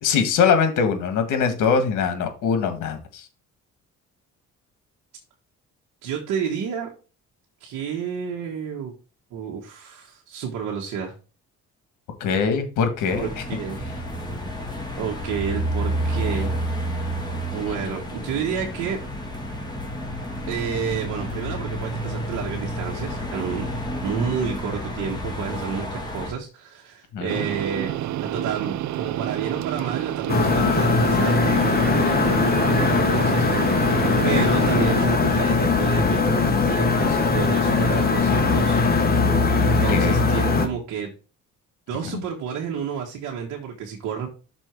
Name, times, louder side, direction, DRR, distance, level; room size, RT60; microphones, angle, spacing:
voice 1, 0.0-3.3 12.2-13.4 17.7-17.8 27.1-27.4 34.3-34.5 39.9-40.3 42.1-42.2, left 6 dB, 85° left, 8 dB, 1.6 m, -23 dB
voice 2, 6.0-6.9 7.6-8.9 9.3-11.1 13.1-13.8 15.0-16.5 17.5-19.0 20.5-23.6 24.0-27.9 28.2-33.9 34.2-38.8 39.6-41.1 41.9-44.3, right 7 dB, 90° right, 0 dB, 1.4 m, -30 dB
sound 1, 13.1-26.3, equal, 15° left, 2.4 m, -30 dB
sound 2, 27.3-35.1, right 13 dB, 70° right, 0.5 m, -29 dB
sound 3, 30.3-40.7, left 4 dB, 30° left, 1.5 m, -20 dB
6.1 x 4.5 x 4.6 m, 0.34 s
cardioid pair, 90°, 30 cm